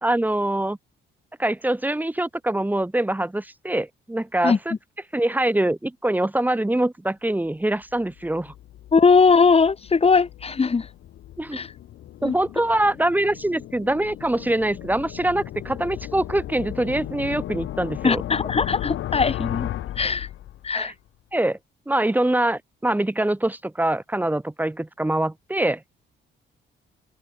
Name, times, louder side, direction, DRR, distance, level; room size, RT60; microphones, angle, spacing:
voice 1, 0.0-0.8 1.4-4.7 5.1-8.5 11.4-11.6 12.2-18.2 20.7-20.9 21.3-21.6 21.9-25.8, right 1 dB, 10° right, 1.1 m, -24 dB
sound 1, 7.9-20.8, left 13 dB, 75° left, 2.3 m, -35 dB
voice 2, 8.9-10.9 11.5-11.7 12.2-12.3 18.0-19.7 20.0-20.3 20.6-20.9, left 5 dB, 30° left, 2.2 m, -19 dB
open air
cardioid pair, 90°, 20 cm